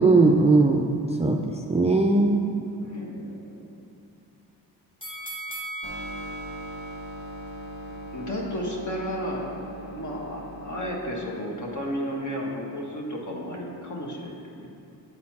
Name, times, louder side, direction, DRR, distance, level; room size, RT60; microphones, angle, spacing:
voice 1, 0.0-2.5, right 3 dB, 15° right, 1 dB, 0.4 m, -20 dB
voice 2, 2.8-3.4 8.1-14.7, equal, 45° left, -1 dB, 1.4 m, -33 dB
sound 1, 5.0-8.1 8.5-8.6, right 2 dB, 10° left, 1.0 m, -39 dB
sound 2, 5.8-10.8, equal, 80° left, 1.2 m, -40 dB
8.7 x 4.2 x 4.2 m, 2.7 s
cardioid pair, 60°, 41 cm